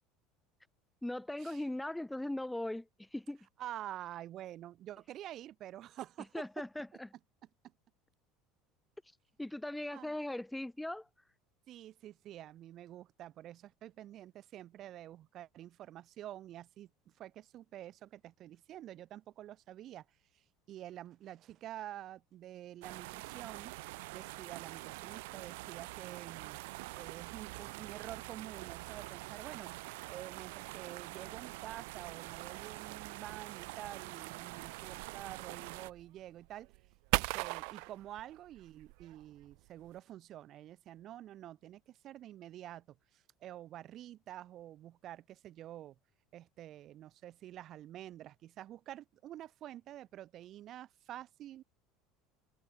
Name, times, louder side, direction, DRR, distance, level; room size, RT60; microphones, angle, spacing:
voice 1, 1.0-3.4 6.3-7.1 9.4-11.1, left 1 dB, 5° left, 1.1 m, -39 dB
voice 2, 3.6-6.3 9.9-10.1 11.7-20.1 20.7-23.8 24.1-26.6 27.0-29.7 30.1-36.7 37.1-46.0 46.3-51.6, right 12 dB, 40° right, 1.9 m, -48 dB
sound 1, 22.8-35.9, right 24 dB, 85° right, 2.1 m, -46 dB
sound 2, 31.6-40.0, right 40 dB or more, 70° right, 0.8 m, -41 dB
open air
cardioid pair, 150°, 0 cm